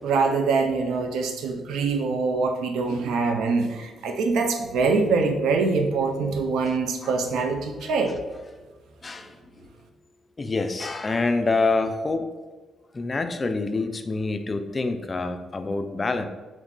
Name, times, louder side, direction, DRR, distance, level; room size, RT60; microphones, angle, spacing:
voice 1, 0.0-8.2, right 4 dB, 80° right, 5 dB, 0.4 m, -24 dB
voice 2, 1.5-2.1 7.0-7.2 7.8-7.9 9.0-9.7 10.4-12.3 12.9-16.3, left 3 dB, 30° left, 7 dB, 0.3 m, -27 dB
3.0 x 2.4 x 3.6 m, 1.2 s
cardioid pair, 90°, 0 cm